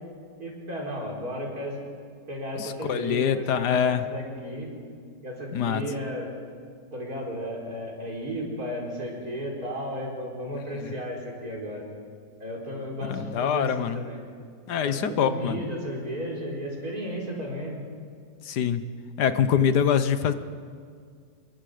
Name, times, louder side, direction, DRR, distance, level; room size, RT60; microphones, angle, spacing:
voice 1, 0.4-1.8 2.3-4.7 5.2-6.3 6.9-11.9 12.4-14.2 14.8-17.8, equal, 60° right, -2 dB, 4.9 m, -34 dB
voice 2, 2.6-4.0 5.5-5.8 13.1-14.0 14.7-15.6 18.4-18.8 19.2-20.3, left 8 dB, 75° left, 11 dB, 1.5 m, -24 dB
27.5 x 22.0 x 5.1 m, 2.1 s
omnidirectional pair, 1.8 m